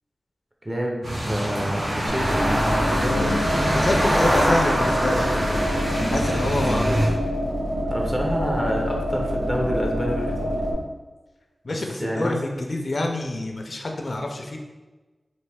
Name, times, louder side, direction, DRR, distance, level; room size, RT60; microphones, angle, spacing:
voice 1, 0.6-2.6 2.9-3.4 7.9-10.6 11.7-12.4, equal, 25° right, -1 dB, 0.6 m, -28 dB
sound 1, 1.0-7.1, equal, 75° right, 0.9 m, -24 dB
sound 2, 2.1-10.7, equal, 55° right, 1.5 m, -27 dB
voice 2, 3.1-5.6 6.1-7.0 11.6-14.6, left 2 dB, 60° left, 2 dB, 0.4 m, -27 dB
3.2 x 2.6 x 3.4 m, 1.2 s
wide cardioid pair, 85°, 0 cm